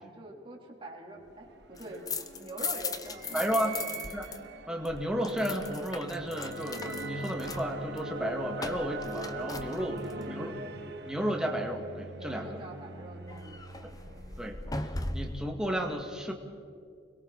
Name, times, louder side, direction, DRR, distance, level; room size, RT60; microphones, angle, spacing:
voice 1, 0.0-4.0 9.8-10.4 12.2-14.2, right 2 dB, 25° right, -2 dB, 3.5 m, -45 dB
sound 1, 1.2-14.9, right 2 dB, 60° right, 1.3 m, -42 dB
sound 2, 1.6-4.4 4.6-10.2 13.3-15.5, left 3 dB, 20° left, 0.8 m, -39 dB
voice 2, 3.3-3.8 4.1-4.2 4.7-10.0 10.2-10.6 11.1-12.5 14.4-14.6 15.1-16.3, equal, 5° right, 1 dB, 2.0 m, -32 dB
29.5 x 22.0 x 4.2 m, 2.3 s
head